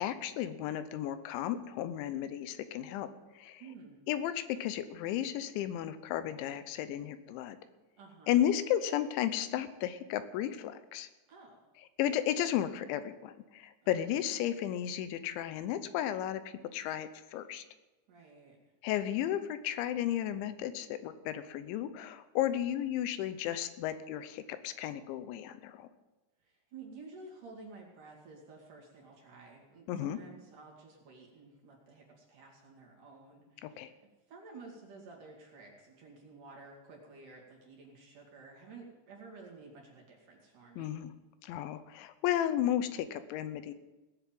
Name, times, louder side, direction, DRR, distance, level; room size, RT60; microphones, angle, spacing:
voice 1, 0.0-3.1 3.4-3.6 4.1-7.6 8.3-11.1 12.0-17.6 18.8-25.9 29.9-30.2 33.6-33.9 40.8-41.1 41.4-43.7, left 11 dB, 85° left, 12 dB, 3.1 m, -34 dB
voice 2, 3.6-4.0 8.0-8.5 11.3-11.6 13.8-14.0 18.1-18.6 26.4-34.0 34.3-41.0, right 3 dB, 50° right, -2 dB, 3.6 m, -52 dB
18.5 x 7.0 x 7.6 m, 1.1 s
omnidirectional pair, 5.3 m